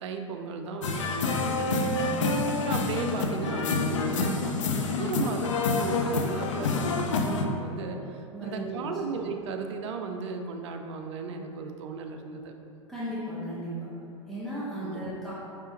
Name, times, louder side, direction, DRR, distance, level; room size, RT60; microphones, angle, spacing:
voice 1, 0.0-1.7 2.3-12.5 14.8-15.0, right 5 dB, 60° right, 4 dB, 0.5 m, -35 dB
sound 1, 0.8-7.5, left 3 dB, 70° left, 0.5 m, -27 dB
voice 2, 1.9-2.2 8.3-8.9 12.9-13.9 14.2-15.3, right 1 dB, ahead, -11 dB, 1.1 m, -35 dB
5.5 x 3.4 x 2.8 m, 2.7 s
figure-of-eight pair, 90°, 17 cm